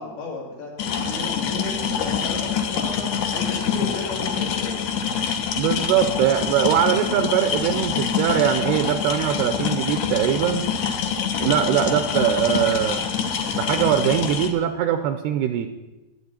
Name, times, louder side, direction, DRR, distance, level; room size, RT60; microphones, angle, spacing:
voice 1, 0.0-4.8, left 3 dB, 85° left, -4 dB, 5.2 m, -34 dB
sound 1, 0.8-14.5, left 7 dB, 70° left, 2.2 m, -25 dB
voice 2, 5.5-10.7 11.4-13.1 13.5-15.8, right 10 dB, 80° right, 9 dB, 2.4 m, -22 dB
23.5 x 8.5 x 4.3 m, 1.1 s
omnidirectional pair, 5.0 m